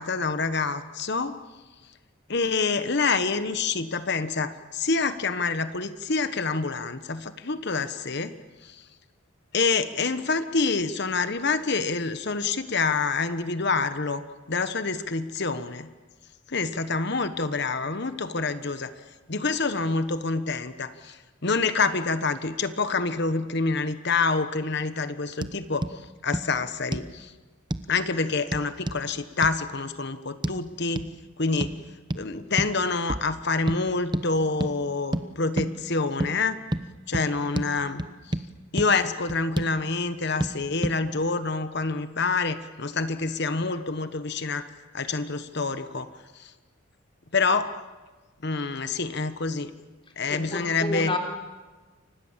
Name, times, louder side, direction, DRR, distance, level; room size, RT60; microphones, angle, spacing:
voice 1, 0.0-1.4 2.3-8.3 8.6-8.9 9.5-15.9 16.5-18.9 19.3-27.3 27.9-31.1 31.4-31.8 32.1-36.6 37.1-38.4 38.7-46.5 47.3-47.7 48.4-49.7 50.2-51.1, left 4 dB, 50° left, 11 dB, 1.2 m, -27 dB
sound 1, 25.4-25.5 25.8-25.9 26.3-26.5 26.9-27.1 27.7-27.9 28.5-29.0 29.4-29.6 30.4-30.6 31.0-31.1 31.6-31.8 32.1-32.2 32.6-32.8 33.1-33.3 33.7-33.8 34.1-34.3 34.6-34.7 35.1-35.3 35.6-35.7 36.2-36.3 36.7-36.9 37.1-37.3 37.6-37.7 38.0-38.5 38.8-38.9 39.3-39.7 40.4-40.5 40.8-41.0, right 1 dB, 20° right, 0.9 m, -28 dB
voice 2, 50.3-51.2, left 3 dB, 25° left, 2 dB, 3.9 m, -30 dB
30.0 x 25.5 x 7.4 m, 1.3 s
head